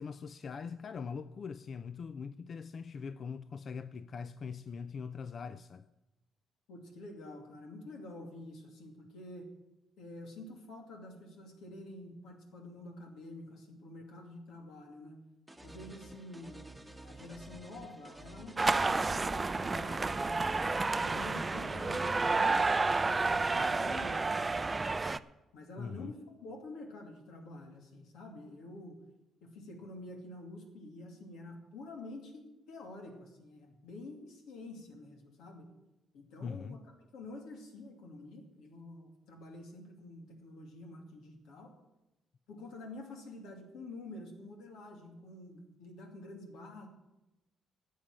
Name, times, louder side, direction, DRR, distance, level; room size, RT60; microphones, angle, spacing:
voice 1, 0.0-5.9 25.8-26.1 36.4-36.8, left 5 dB, 50° left, 0.4 m, -42 dB
voice 2, 6.7-9.5 10.0-15.2 15.6-20.5 21.0-25.0 25.5-26.1 26.4-29.0 29.4-35.7 36.1-41.7 42.5-46.9, left 2 dB, 85° left, 2.6 m, -48 dB
sound 1, 15.5-22.4, right 1 dB, 5° right, 1.1 m, -51 dB
sound 2, 18.6-25.2, right 3 dB, 25° right, 0.4 m, -30 dB
11.5 x 7.5 x 9.0 m
cardioid pair, 90°, 0 cm